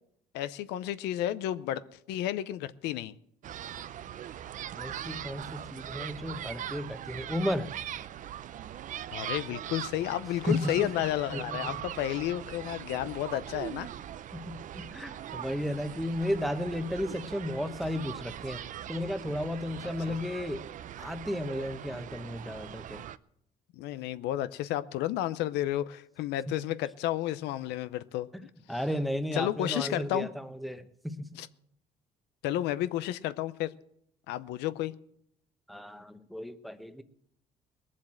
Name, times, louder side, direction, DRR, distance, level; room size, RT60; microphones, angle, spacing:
voice 1, 0.3-1.8 2.1-3.1 9.1-13.9 20.1-20.2 23.7-28.3 29.3-30.3 31.4-31.5 32.4-33.7 34.3-34.9, left 13 dB, 90° left, 15 dB, 0.6 m, -32 dB
sound 1, 3.4-23.2, right 10 dB, 50° right, 0.5 m, -41 dB
voice 2, 4.7-7.7 10.5-10.9 11.3-11.8 14.3-18.6 18.9-20.6 21.0-23.0 26.5-26.6 28.3-31.3 35.7-37.0, left 1 dB, ahead, 10 dB, 1.0 m, -34 dB
19.5 x 7.5 x 7.6 m, 0.72 s
cardioid pair, 110°, 17 cm